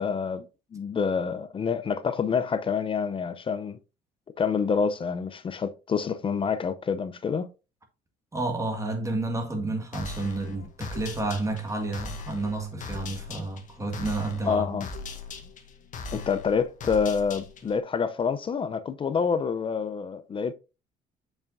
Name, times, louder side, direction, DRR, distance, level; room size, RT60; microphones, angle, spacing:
voice 1, 0.0-3.8 4.4-7.5 14.5-14.9 16.1-20.5, left 6 dB, 30° left, 0.5 m, -27 dB
voice 2, 8.3-14.8, right 2 dB, 20° right, 1.6 m, -30 dB
sound 1, 9.9-17.8, left 4 dB, 50° left, 1.4 m, -40 dB
7.1 x 5.5 x 2.6 m
cardioid pair, 110°, 17 cm